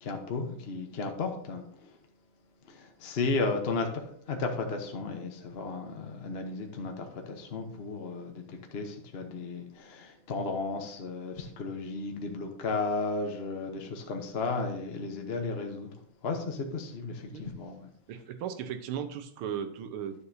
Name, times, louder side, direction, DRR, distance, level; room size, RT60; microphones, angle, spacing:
voice 1, 0.0-1.9 2.7-8.4 8.7-15.9 16.2-17.9, left 3 dB, 50° left, 3 dB, 0.8 m, -34 dB
voice 2, 18.1-20.3, right 8 dB, 85° right, 8 dB, 1.7 m, -36 dB
11.0 x 7.0 x 2.7 m, 0.62 s
omnidirectional pair, 2.4 m